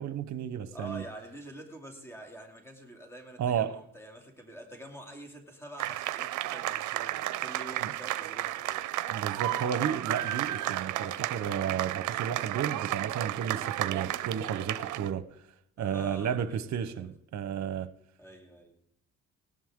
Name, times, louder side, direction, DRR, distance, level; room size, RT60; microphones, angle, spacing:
voice 1, 0.0-1.0 3.4-3.8 7.8-7.9 9.1-15.2 15.8-17.9, right 8 dB, 65° right, 1.0 m, -32 dB
voice 2, 0.7-8.9 10.9-11.2 15.8-16.6 16.9-17.1 18.2-18.8, right 1 dB, 10° left, 2.7 m, -46 dB
sound 1, 5.8-15.1, right 15 dB, 80° right, 0.6 m, -33 dB
18.5 x 11.0 x 3.7 m
cardioid pair, 90°, 30 cm